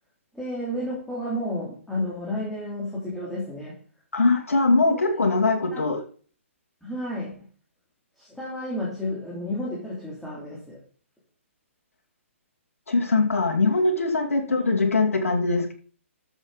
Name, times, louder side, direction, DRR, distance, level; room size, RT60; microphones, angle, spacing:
voice 1, 0.3-3.8 4.9-5.2 5.7-5.9 6.8-7.4 8.2-10.8, left 1 dB, ahead, 3.2 m, -32 dB
voice 2, 4.1-6.0 12.9-15.7, left 3 dB, 85° left, 2.6 m, -22 dB
13.5 x 7.2 x 4.2 m
hypercardioid pair, 145°, 7 cm